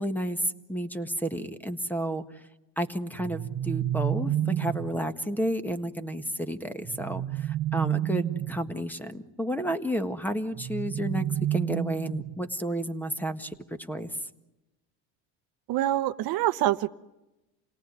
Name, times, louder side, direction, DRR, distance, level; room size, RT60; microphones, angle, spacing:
voice 1, 0.0-2.4 2.8-14.2, equal, 5° left, 10 dB, 1.6 m, -31 dB
sound 1, 3.1-5.0 6.8-8.7 10.5-12.5, right 11 dB, 35° right, 1.0 m, -30 dB
voice 2, 15.7-16.9, right 14 dB, 60° right, 12 dB, 1.0 m, -25 dB
28.5 x 18.5 x 9.6 m, 1.0 s
cardioid pair, 115°, 40 cm